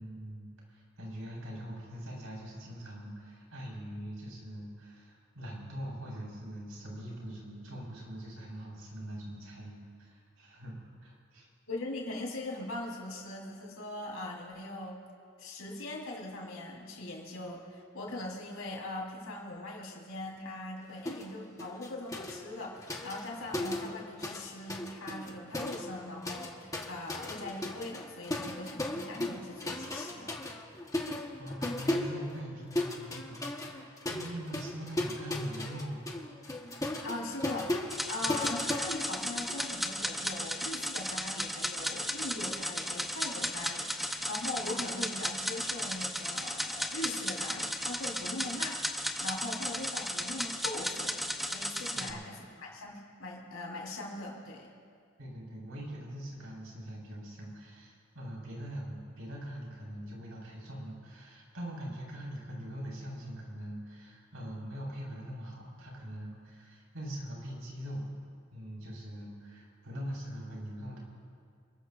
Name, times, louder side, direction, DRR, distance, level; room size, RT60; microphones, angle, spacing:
voice 1, 0.0-10.8 11.0-11.5 31.4-36.1 38.2-38.4 51.9-52.3 55.2-68.1 68.5-71.0, equal, 80° right, -4 dB, 4.5 m, -42 dB
voice 2, 11.7-15.0 15.4-30.3 37.0-51.2 51.5-54.7, left 2 dB, 80° left, -3 dB, 3.9 m, -41 dB
sound 1, 21.1-21.3 21.6-24.4 24.7-39.7, left 1 dB, 15° left, 1.1 m, -37 dB
sound 2, 37.9-52.1, equal, ahead, 0.7 m, -35 dB
28.0 x 13.5 x 2.5 m, 2.2 s
head